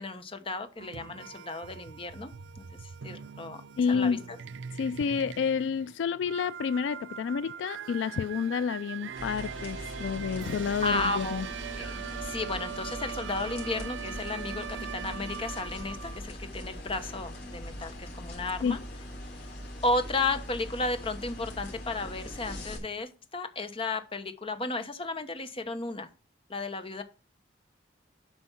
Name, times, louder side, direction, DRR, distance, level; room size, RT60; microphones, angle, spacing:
voice 1, 0.0-3.6 3.9-4.4 10.8-11.4 11.7-18.8 19.8-26.1 26.5-27.0, left 2 dB, 30° left, 1.0 m, -34 dB
sound 1, 0.8-16.2, right 7 dB, 85° right, 0.5 m, -41 dB
voice 2, 3.8-4.2 4.7-11.5 18.6-18.8, left 6 dB, 75° left, 0.3 m, -29 dB
sound 2, 9.2-22.8, left 1 dB, 60° left, 3.7 m, -41 dB
8.2 x 5.2 x 5.6 m
head